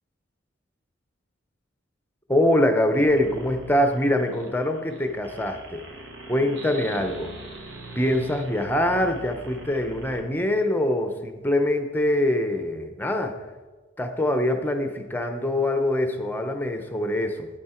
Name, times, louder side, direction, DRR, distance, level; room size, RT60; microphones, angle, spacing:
voice 1, 2.3-5.8 6.3-7.3 8.0-13.4 14.0-17.5, left 1 dB, 10° left, 5 dB, 0.7 m, -24 dB
sound 1, 3.0-10.2, right 2 dB, 65° right, 1.2 m, -42 dB
9.3 x 8.5 x 4.4 m, 1.3 s
head